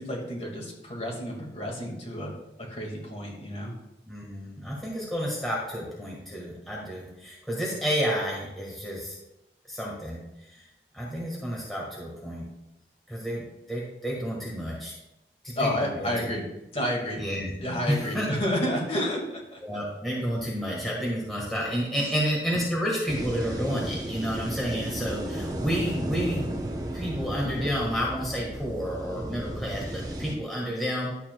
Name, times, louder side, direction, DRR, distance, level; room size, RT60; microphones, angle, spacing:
voice 1, 0.0-2.3 2.7-3.7 15.6-16.4 16.7-17.2 17.6-19.6 22.0-22.1, left 1 dB, 35° left, -2 dB, 1.8 m, -30 dB
voice 2, 4.1-9.2 9.7-10.2 10.5-10.6 10.9-12.4 13.1-14.9 15.4-16.3 17.2-17.5 17.9-18.3 19.6-26.5 26.9-31.1, equal, ahead, -5 dB, 1.4 m, -30 dB
sound 1, 23.1-30.3, right 1 dB, 20° right, 0.7 m, -34 dB
11.5 x 7.0 x 2.2 m, 0.89 s
head